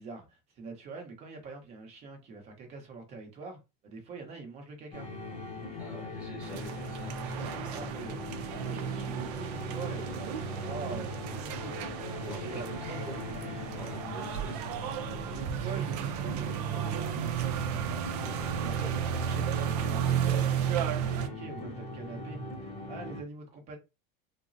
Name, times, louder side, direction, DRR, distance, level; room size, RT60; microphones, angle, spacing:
voice 1, 0.0-5.1 7.7-8.2 8.5-12.1 12.4-13.1 13.4-13.5 15.3-23.8, right 4 dB, 35° right, 0.8 m, -44 dB
sound 1, 4.9-23.2, left 2 dB, 30° left, 0.6 m, -40 dB
voice 2, 5.8-8.1 12.3-12.6 12.9-15.4, equal, 5° right, 1.1 m, -47 dB
sound 2, 6.4-21.3, right 9 dB, 75° right, 0.5 m, -33 dB
3.6 x 2.0 x 2.5 m
cardioid pair, 165°, 20 cm